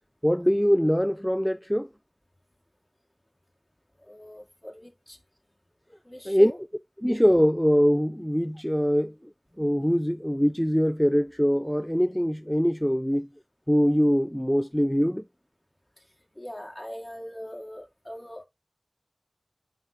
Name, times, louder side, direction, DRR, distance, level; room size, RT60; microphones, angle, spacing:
voice 1, 0.2-1.9 6.3-6.5 7.0-9.1 9.6-13.3 13.7-15.2, equal, 5° left, 0.3 m, -23 dB
voice 2, 4.0-5.2 6.0-6.6 16.4-18.4, equal, 30° left, 2.2 m, -41 dB
11.0 x 4.3 x 2.5 m
wide cardioid pair, 45°, 0 cm